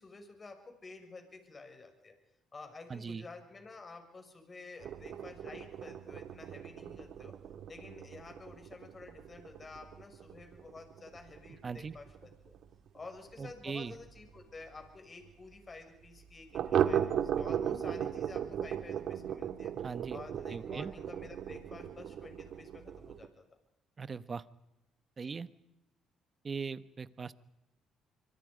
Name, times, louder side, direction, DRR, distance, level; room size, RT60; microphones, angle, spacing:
voice 1, 0.0-2.2 2.5-7.3 7.7-12.5 12.9-19.7 20.1-23.4 25.2-25.4, left 3 dB, 30° left, 5 dB, 6.2 m, -50 dB
voice 2, 2.9-3.3 11.6-11.9 13.4-13.9 19.8-20.2 20.5-20.9 24.0-24.4 25.2-25.5 26.4-27.3, right 5 dB, 35° right, 15 dB, 1.1 m, -40 dB
sound 1, 4.8-14.1 14.4-14.5 14.8-14.9 15.3-15.4 16.5-23.3, right 9 dB, 65° right, 1.7 m, -37 dB
25.5 x 25.0 x 5.2 m, 0.92 s
cardioid pair, 85°, 0 cm